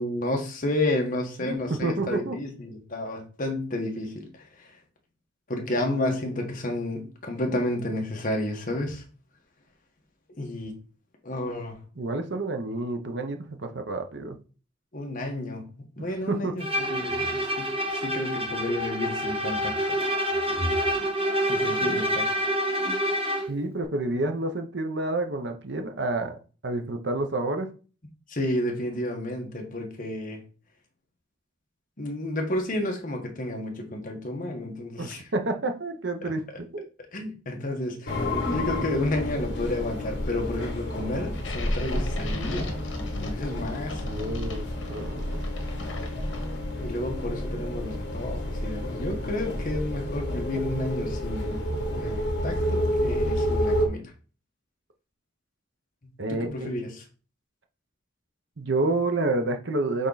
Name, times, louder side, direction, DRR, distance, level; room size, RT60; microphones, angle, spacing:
voice 1, 0.0-4.7 5.5-9.0 10.4-10.8 11.2-11.8 14.9-20.0 21.4-22.3 28.3-30.4 32.0-35.2 36.2-36.3 37.1-42.8 43.2-44.0 46.8-51.7 51.9-54.0 56.3-57.0, left 1 dB, 45° left, 1.3 m, -31 dB
voice 2, 1.4-2.4 12.0-14.4 16.3-16.6 23.5-27.7 35.0-36.8 44.0-45.4 56.2-56.7 58.6-60.1, right 2 dB, 65° right, 0.9 m, -29 dB
Bowed string instrument, 16.6-23.6, equal, 30° right, 1.1 m, -27 dB
sound 1, 38.1-53.9, equal, 65° left, 1.8 m, -30 dB
sound 2, 41.3-46.8, left 3 dB, 80° left, 1.4 m, -40 dB
6.4 x 3.7 x 4.0 m
head